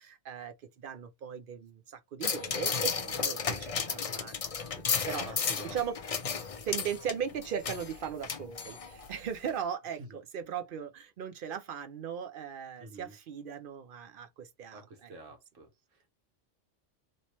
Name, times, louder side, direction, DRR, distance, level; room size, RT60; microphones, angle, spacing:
voice 1, 0.0-4.4 4.7-5.4 5.7-6.0 6.6-15.1, right 8 dB, 60° right, 0.6 m, -38 dB
sound 1, 2.2-9.1 9.5-9.6, left 6 dB, 55° left, 0.4 m, -33 dB
voice 2, 5.2-5.9 10.0-10.2 12.8-13.1 14.7-15.7, right 2 dB, 85° right, 1.4 m, -48 dB
3.0 x 2.9 x 2.9 m
omnidirectional pair, 1.3 m